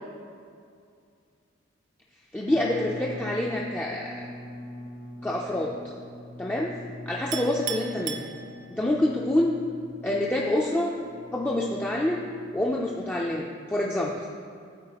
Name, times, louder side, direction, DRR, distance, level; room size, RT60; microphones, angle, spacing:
voice 1, 2.3-4.3 5.2-5.9 6.4-6.7 7.1-8.2 8.7-9.5 10.0-10.9 11.3-12.2 12.5-14.4, left 1 dB, 10° left, -3 dB, 0.3 m, -27 dB
sound 1, 2.5-13.4, left 1 dB, 65° left, 0.9 m, -43 dB
Chink clink, 7.3-9.0, right 9 dB, 60° right, 0.5 m, -36 dB
12.0 x 4.5 x 2.8 m, 2.3 s
head